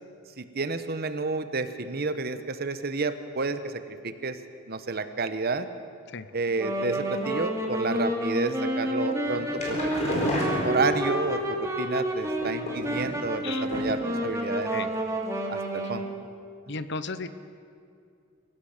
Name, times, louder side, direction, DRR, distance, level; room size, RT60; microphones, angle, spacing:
voice 1, 0.4-4.4 4.7-5.7 6.3-9.8 10.0-14.7 15.5-16.1, right 3 dB, 50° right, 10 dB, 1.1 m, -30 dB
Wind instrument woodwind instrument, 6.5-16.2, right 1 dB, 15° right, 2.8 m, -30 dB
sound 1, 9.3-11.4 12.3-13.3 13.7-14.1 14.4-14.5 14.8-14.9, left 1 dB, 35° left, 4.6 m, -31 dB
voice 2, 16.7-17.3, left 4 dB, 60° left, 12 dB, 1.0 m, -34 dB
25.0 x 16.5 x 6.7 m, 2.4 s
head